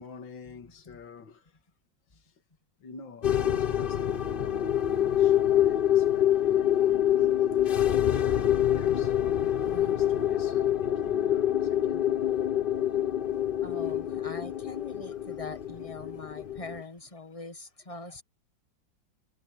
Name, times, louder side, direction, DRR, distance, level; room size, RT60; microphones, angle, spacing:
voice 1, 0.0-1.6 2.1-2.4 2.8-9.2 9.7-12.1, left 5 dB, 80° left, 2.7 m, -48 dB
sound 1, 3.2-16.8, left 11 dB, 65° left, 0.5 m, -26 dB
voice 2, 9.6-10.0 13.6-18.2, left 3 dB, 25° left, 1.0 m, -43 dB
omnidirectional pair, 2.0 m